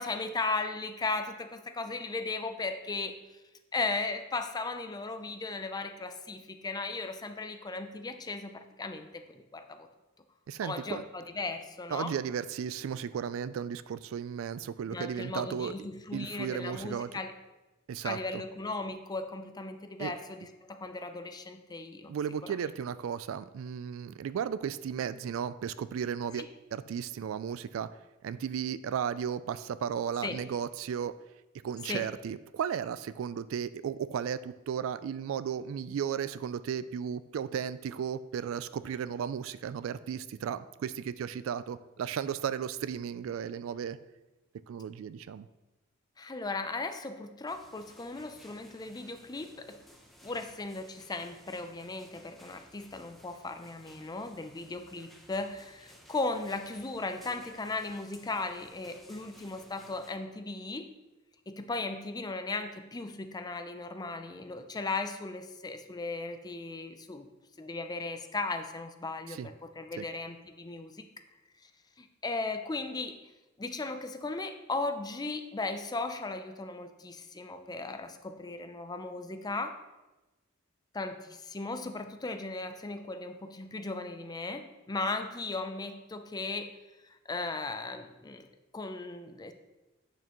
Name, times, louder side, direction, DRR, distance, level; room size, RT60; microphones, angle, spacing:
voice 1, 0.0-3.4 3.7-9.9 10.6-12.1 14.9-17.3 18.0-22.1 22.4-22.5 26.4-26.5 30.2-30.4 31.9-32.1 46.2-49.8 50.2-60.9 61.5-67.3 67.6-71.1 71.6-71.7 72.0-73.2 73.6-79.8 80.9-86.7 87.0-89.5, left 3 dB, 20° left, 8 dB, 0.5 m, -37 dB
voice 2, 10.5-11.0 11.9-15.7 16.1-17.1 17.9-18.4 20.0-20.1 22.1-27.9 28.2-31.1 31.6-44.0 44.7-45.5 69.3-69.5 70.0-70.1, right 8 dB, 70° right, 15 dB, 0.3 m, -35 dB
sound 1, 47.5-60.1, equal, ahead, 0.8 m, -57 dB
8.2 x 6.8 x 3.0 m, 1.1 s
head